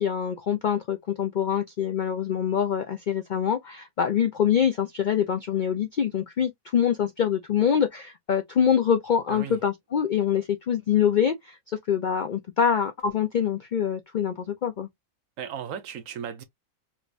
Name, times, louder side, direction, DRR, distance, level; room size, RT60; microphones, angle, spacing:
voice 1, 0.0-14.9, left 8 dB, 75° left, 0.4 m, -25 dB
voice 2, 15.4-16.4, right 8 dB, 70° right, 1.0 m, -36 dB
3.3 x 3.0 x 2.4 m
omnidirectional pair, 1.5 m